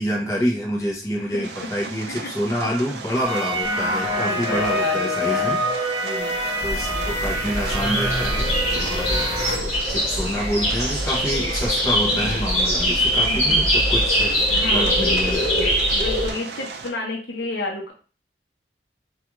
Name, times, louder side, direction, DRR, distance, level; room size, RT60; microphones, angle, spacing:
voice 1, 0.0-5.6 6.6-15.7, equal, 15° left, -3 dB, 0.5 m, -27 dB
voice 2, 1.2-1.7 2.1-2.3 4.1-5.5 6.0-6.4 6.9-7.1 8.8-9.1 13.2-13.8 14.5-15.5 15.9-17.9, left 2 dB, 70° left, 0 dB, 0.7 m, -32 dB
sound 1, 1.4-16.9, right 4 dB, 70° right, 0.4 m, -36 dB
sound 2, 3.2-9.6, equal, 20° right, 0.9 m, -26 dB
sound 3, 6.6-16.3, equal, 35° left, 1.0 m, -22 dB
2.3 x 2.3 x 2.9 m, 0.37 s
head